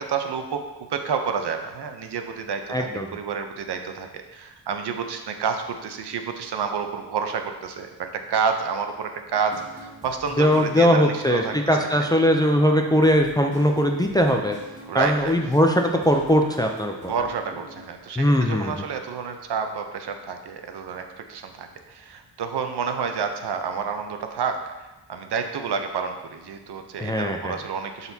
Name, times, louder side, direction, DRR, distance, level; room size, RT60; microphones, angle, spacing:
voice 1, 0.0-11.6 12.0-12.1 14.9-15.3 17.1-24.6 25.1-28.1, right 6 dB, 65° right, 6 dB, 0.8 m, -29 dB
voice 2, 2.7-3.2 10.4-14.6 14.9-17.1 18.2-18.7 27.0-27.5, equal, 10° left, 2 dB, 0.4 m, -20 dB
sound 1, 9.3-17.9, right 1 dB, 15° right, 1.6 m, -44 dB
11.5 x 4.2 x 2.8 m, 1.1 s
wide cardioid pair, 115°, 43 cm